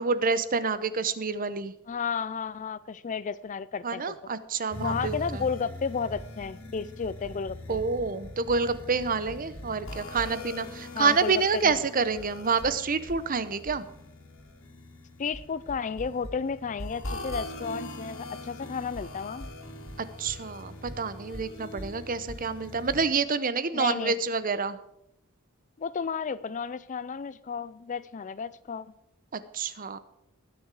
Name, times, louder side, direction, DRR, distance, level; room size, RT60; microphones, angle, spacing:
voice 1, 0.0-1.7 3.8-5.4 7.7-13.8 20.2-24.8 29.3-30.0, right 5 dB, 40° right, 0.7 m, -28 dB
voice 2, 1.9-4.2 4.8-7.8 10.9-11.3 11.6-11.8 15.2-19.5 23.7-24.2 25.8-28.9, left 6 dB, 35° left, 0.4 m, -33 dB
sound 1, 4.7-23.1, left 1 dB, 60° left, 2.6 m, -41 dB
20.0 x 6.7 x 4.8 m
head